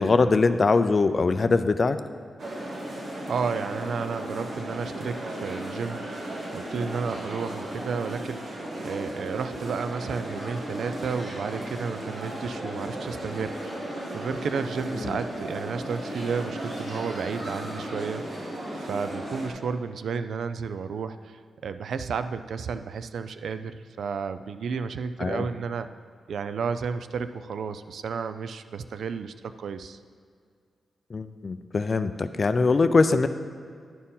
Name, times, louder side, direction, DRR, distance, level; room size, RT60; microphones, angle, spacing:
voice 1, 0.0-2.0 15.0-15.2 25.2-25.5 31.1-33.3, left 3 dB, 40° left, 11 dB, 0.4 m, -22 dB
sound 1, 2.4-19.5, right 1 dB, 55° right, 1.6 m, -35 dB
voice 2, 3.3-6.3 6.5-8.4 8.8-25.9 26.3-30.0, right 5 dB, 80° right, 11 dB, 0.3 m, -32 dB
11.0 x 4.4 x 5.4 m, 2.2 s
wide cardioid pair, 125°, 0 cm